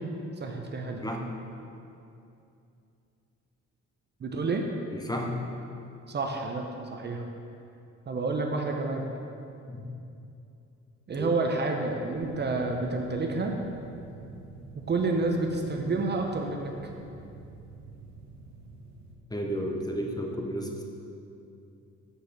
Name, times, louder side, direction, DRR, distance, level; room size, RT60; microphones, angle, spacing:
voice 1, 0.4-1.0 4.2-4.6 6.1-6.7 6.9-7.2 8.1-9.1 11.1-13.6 14.9-16.7, right 3 dB, 35° right, 3 dB, 0.7 m, -29 dB
voice 2, 4.9-5.3 9.7-10.0 11.1-11.3 19.3-20.8, equal, 15° left, 1 dB, 0.8 m, -32 dB
sound 1, 12.1-19.2, right 3 dB, 65° right, 0.9 m, -47 dB
6.4 x 5.1 x 5.1 m, 2.7 s
cardioid pair, 90°, 30 cm